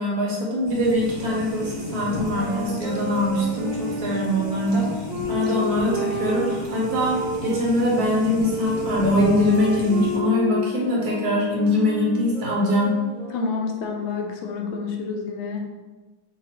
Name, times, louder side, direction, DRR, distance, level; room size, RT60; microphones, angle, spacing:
voice 1, 0.0-4.8 5.3-7.2 7.4-13.0, left 1 dB, 60° right, -3 dB, 1.3 m, -23 dB
sound 1, 0.6-10.2, left 1 dB, 25° right, 0.8 m, -34 dB
sound 2, 2.1-7.7 8.4-13.9, equal, 75° right, 1.7 m, -30 dB
voice 2, 13.3-15.7, left 5 dB, 85° left, 2 dB, 1.4 m, -29 dB
4.9 x 2.4 x 4.3 m, 1.2 s
omnidirectional pair, 2.1 m